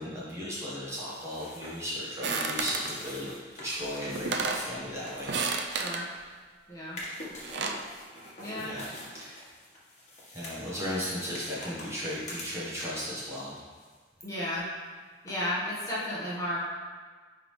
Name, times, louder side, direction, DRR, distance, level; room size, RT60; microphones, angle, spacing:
voice 1, 0.0-5.3 8.6-8.8 9.1-9.5 10.3-13.6, equal, 15° right, -8 dB, 1.2 m, -36 dB
sound 1, 0.9-6.4 6.8-13.1 13.4-14.3 14.5-14.6 15.3-15.4, left 1 dB, 40° left, 1.4 m, -46 dB
sound 2, 2.2-2.9 3.8-3.9 4.2-4.7 5.2-6.0 7.2-7.9, right 4 dB, 65° right, 0.5 m, -31 dB
voice 2, 5.7-6.1 6.7-7.0 8.4-8.7 14.2-14.6 15.2-16.6, left 1 dB, 20° left, -8 dB, 1.3 m, -33 dB
9.6 x 3.5 x 3.2 m, 1.5 s
head